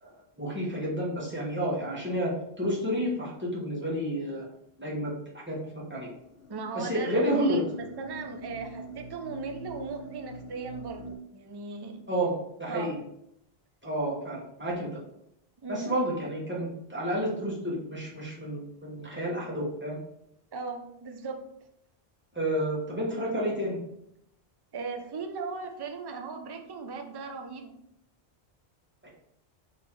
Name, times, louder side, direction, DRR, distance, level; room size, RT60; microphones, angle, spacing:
voice 1, 0.0-4.4 4.8-6.1 6.7-7.6 12.1-12.3 12.6-12.9 13.8-14.9 15.7-20.0 22.3-23.8, equal, 10° right, -6 dB, 1.3 m, -30 dB
sound 1, 6.0-11.2, right 1 dB, 65° left, 0.9 m, -44 dB
voice 2, 6.5-7.6 8.0-11.0 11.3-12.1 12.7-13.0 15.6-15.9 20.5-21.4 24.7-27.7, right 4 dB, 40° right, 5 dB, 0.4 m, -37 dB
3.9 x 3.1 x 4.4 m, 0.77 s
omnidirectional pair, 1.1 m